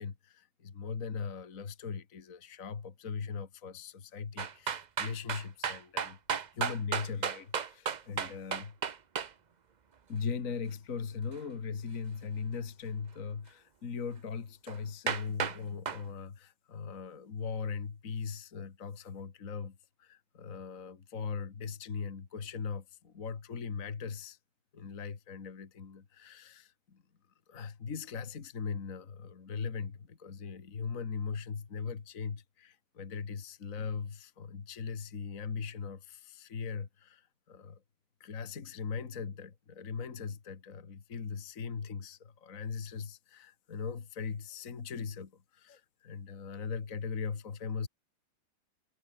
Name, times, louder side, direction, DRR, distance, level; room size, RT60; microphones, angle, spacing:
voice 1, 0.0-8.8 10.1-24.4 24.7-27.0 27.5-37.8 38.2-47.9, left 5 dB, 45° left, 2.2 m, -39 dB
sound 1, 4.4-9.3 14.7-14.8 15.1-15.6 15.9-16.0, right 6 dB, 90° right, 0.4 m, -33 dB
omnidirectional pair, 2.0 m